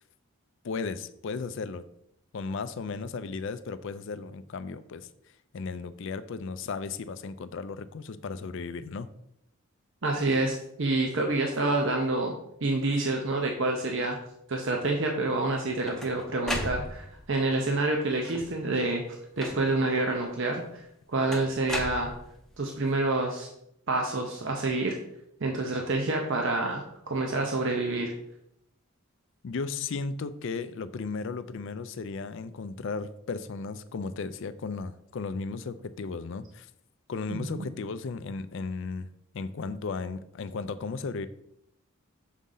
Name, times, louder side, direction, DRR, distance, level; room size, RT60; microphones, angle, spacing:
voice 1, 0.6-1.9 2.3-5.1 5.5-9.1 29.4-36.7 37.1-41.3, left 4 dB, 55° left, 13 dB, 0.4 m, -35 dB
voice 2, 10.0-12.4 12.6-14.2 14.5-19.0 19.4-20.8 21.1-22.1 22.6-23.5 23.9-25.0 25.4-28.1 37.3-37.7, right 2 dB, 55° right, 1 dB, 0.7 m, -28 dB
sound 1, 15.5-17.3 18.1-18.7 19.4-19.9 21.3-22.6, left 1 dB, ahead, 0.6 m, -36 dB
6.4 x 4.1 x 3.8 m, 0.76 s
head